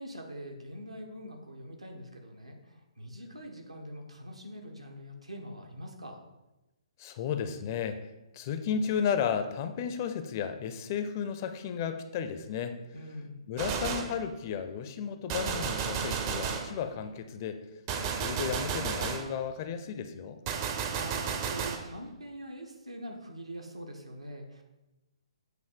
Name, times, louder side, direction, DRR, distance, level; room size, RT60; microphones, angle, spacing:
voice 1, 0.0-6.2 12.9-13.4 20.6-24.6, equal, 80° right, 3 dB, 1.1 m, -44 dB
voice 2, 7.0-8.1 8.3-12.8 13.5-17.6 18.0-20.4, left 7 dB, 35° left, 9 dB, 0.4 m, -33 dB
Gunshot gunfire, 13.6-14.2 15.3-16.8 17.9-19.3 20.5-21.9, right 7 dB, 30° right, 0.5 m, -33 dB
7.8 x 2.6 x 5.1 m, 1.0 s
figure-of-eight pair, 130°, 3 cm